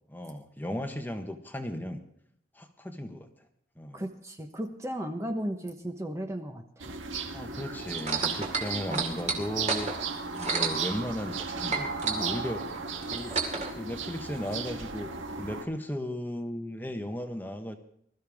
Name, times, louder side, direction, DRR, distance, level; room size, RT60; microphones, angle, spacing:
voice 1, 0.1-2.0 2.5-3.3 3.8-4.0 7.3-9.9 10.3-12.7 13.1-13.4 13.7-15.1 15.4-17.8, equal, 10° left, 6 dB, 1.2 m, -36 dB
voice 2, 3.9-6.9 8.9-9.4, equal, 15° right, 5 dB, 1.1 m, -36 dB
sound 1, 6.8-15.6, right 5 dB, 85° right, 1.7 m, -36 dB
sound 2, 8.0-11.4 11.7-13.7 14.5-14.6, right 4 dB, 35° right, 2.5 m, -31 dB
21.0 x 13.5 x 3.6 m, 0.70 s
head